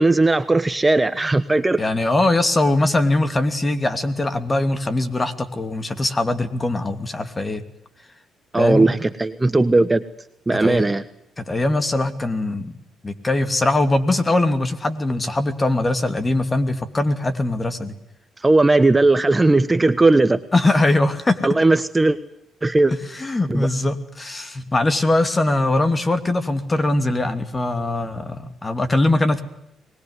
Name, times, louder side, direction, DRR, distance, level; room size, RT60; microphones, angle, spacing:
voice 1, 0.0-1.8 8.5-10.0 10.5-11.0 18.4-20.4 21.4-22.2 22.6-22.9 23.5-23.7, right 2 dB, 15° right, 12 dB, 1.2 m, -17 dB
voice 2, 1.8-7.6 8.6-8.9 10.5-10.8 11.4-12.7 13.0-18.0 20.5-21.4 23.1-29.4, left 2 dB, 25° left, 11 dB, 2.8 m, -21 dB
24.5 x 20.5 x 9.7 m, 0.81 s
cardioid pair, 90°, 0 cm